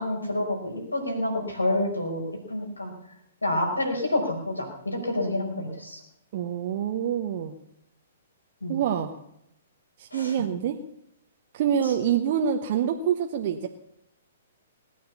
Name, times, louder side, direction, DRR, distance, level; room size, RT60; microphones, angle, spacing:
voice 1, 0.0-2.9 3.4-6.0 8.6-8.8 10.1-10.3 11.8-11.9, left 1 dB, 80° left, 2 dB, 4.9 m, -28 dB
voice 2, 6.3-7.5 8.7-9.2 10.0-10.8 11.5-13.7, right 9 dB, 45° right, 4 dB, 1.0 m, -26 dB
19.5 x 9.3 x 7.1 m, 0.79 s
figure-of-eight pair, 115°, 0 cm